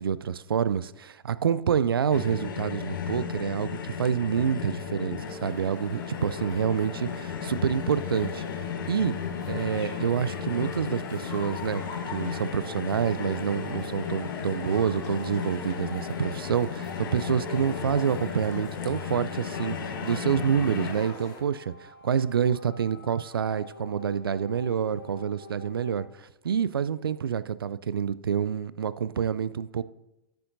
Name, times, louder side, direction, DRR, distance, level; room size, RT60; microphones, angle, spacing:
voice 1, 0.0-8.4 8.9-9.1 9.5-11.8 12.1-21.7 22.0-26.1 26.4-29.8, right 7 dB, 80° right, 0.4 m, -27 dB
sound 1, 2.1-20.9, left 7 dB, 65° left, 1.1 m, -35 dB
sound 2, 5.2-21.4, left 3 dB, 35° left, 2.1 m, -43 dB
sound 3, 11.0-26.0, left 3 dB, 80° left, 1.0 m, -48 dB
13.0 x 7.0 x 2.6 m
figure-of-eight pair, 105°, 12 cm